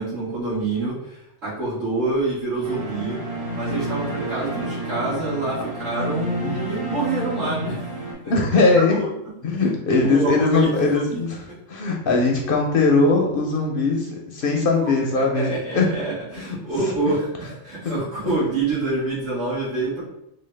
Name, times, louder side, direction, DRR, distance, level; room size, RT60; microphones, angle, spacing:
voice 1, 0.0-3.2 3.5-8.0 8.2-8.4 8.8-9.1 9.9-11.3 14.5-20.0, right 3 dB, 65° right, -11 dB, 2.0 m, -27 dB
sound 1, 2.6-8.1, right 1 dB, 85° right, 1.7 m, -30 dB
voice 2, 8.3-9.0 9.4-15.9 16.4-16.5 17.1-17.2 18.2-18.4, left 3 dB, 60° left, 0 dB, 0.6 m, -20 dB
4.1 x 2.2 x 3.2 m, 0.79 s
omnidirectional pair, 1.4 m